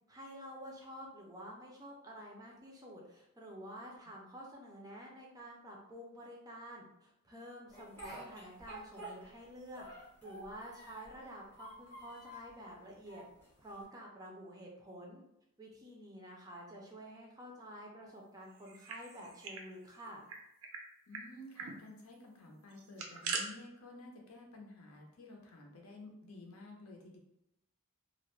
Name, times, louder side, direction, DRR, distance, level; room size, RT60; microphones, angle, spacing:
voice 1, 0.1-9.9 10.2-13.2 13.6-15.2 15.6-20.2, equal, 15° right, -2 dB, 0.4 m, -50 dB
Speech, 7.7-9.5 9.8-11.2 11.5-12.5 13.1-13.8, right 1 dB, 10° left, 0.7 m, -50 dB
sound 1, 18.6-19.7 19.9-20.0 20.3-20.8 21.1-21.2 21.6-21.8 22.7-23.4, right 4 dB, 75° right, 0.4 m, -41 dB
voice 2, 21.1-27.2, left 2 dB, 75° left, 0 dB, 0.6 m, -52 dB
2.3 x 2.0 x 3.0 m, 0.85 s
head